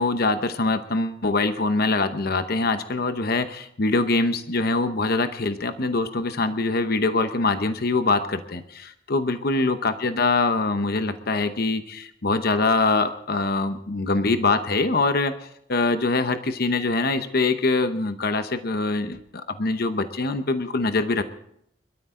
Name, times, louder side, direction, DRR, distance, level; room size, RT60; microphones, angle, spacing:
voice 1, 0.0-15.3 15.7-21.2, left 3 dB, 55° left, 9 dB, 0.9 m, -23 dB
22.5 x 13.0 x 3.8 m, 0.71 s
head